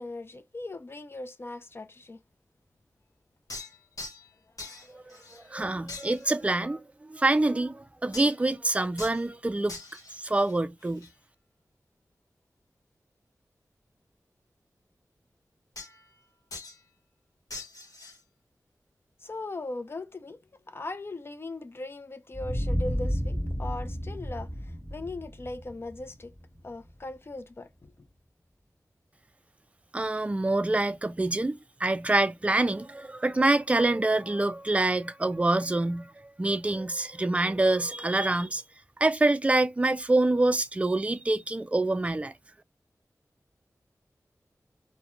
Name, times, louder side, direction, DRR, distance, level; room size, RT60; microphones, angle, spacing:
voice 1, 0.0-2.2 19.2-20.4 20.7-24.5 24.9-26.3 26.6-27.7, left 2 dB, 40° left, 0.5 m, -39 dB
sound 1, 3.5-4.3 4.6-5.5 5.9-6.4 8.1-8.5 9.0-9.2 9.7-11.1 15.8-16.2 16.5-16.8 17.5-18.2, left 3 dB, 70° left, 1.1 m, -43 dB
voice 2, 4.9-9.8 10.1-11.1 29.9-38.6 39.0-42.3, right 2 dB, 20° right, 0.3 m, -26 dB
sound 2, 22.3-26.9, equal, 15° left, 1.0 m, -32 dB
2.4 x 2.2 x 2.9 m
wide cardioid pair, 70°, 6 cm